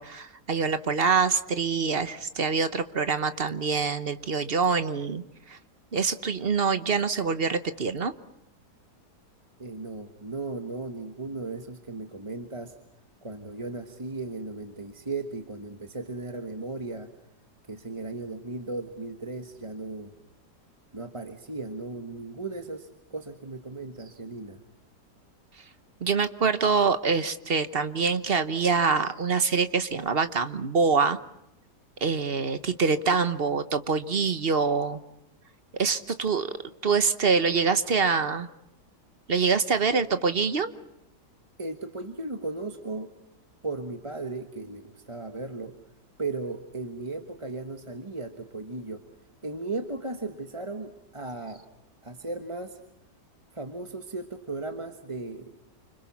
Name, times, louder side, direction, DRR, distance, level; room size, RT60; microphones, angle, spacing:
voice 1, 0.0-5.6 5.9-8.1 26.0-31.2 32.0-35.0 35.8-36.5 36.8-38.5 39.3-40.7, right 5 dB, 40° right, 11 dB, 1.1 m, -25 dB
voice 2, 9.6-12.8 13.2-17.1 17.7-20.1 20.9-24.6 41.6-43.1 43.6-45.7 46.2-49.0 49.4-51.6 52.0-52.8 53.5-55.6, right 3 dB, 20° right, 6 dB, 1.2 m, -36 dB
29.0 x 26.0 x 5.8 m, 0.82 s
omnidirectional pair, 1.8 m